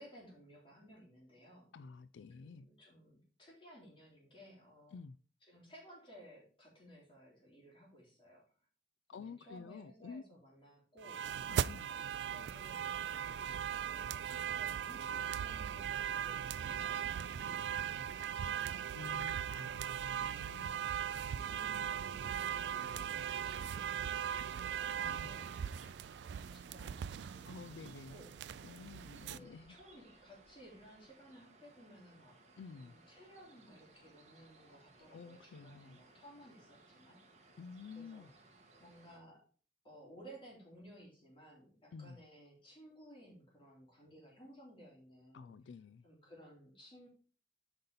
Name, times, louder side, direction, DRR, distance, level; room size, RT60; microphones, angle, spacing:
voice 1, 0.0-1.7 2.4-5.0 5.4-8.4 9.1-11.3 11.8-13.5 13.8-19.5 21.3-25.5 26.2-28.4 29.2-32.4 32.7-37.2 37.9-38.3 38.8-39.4 39.8-45.5 46.0-47.1, equal, 30° left, 3.6 m, -58 dB
voice 2, 1.7-2.7 4.9-5.2 9.1-10.2 11.5-11.9 18.9-20.7 25.0-25.3 27.4-28.2 28.6-29.8 32.6-33.0 35.1-36.0 37.6-38.3 41.9-42.2 45.3-46.0, left 5 dB, 85° left, 0.3 m, -50 dB
sound 1, 11.0-29.4, right 9 dB, 70° right, 0.3 m, -39 dB
sound 2, 23.8-39.2, right 3 dB, 40° right, 1.4 m, -63 dB
7.8 x 5.4 x 4.1 m
head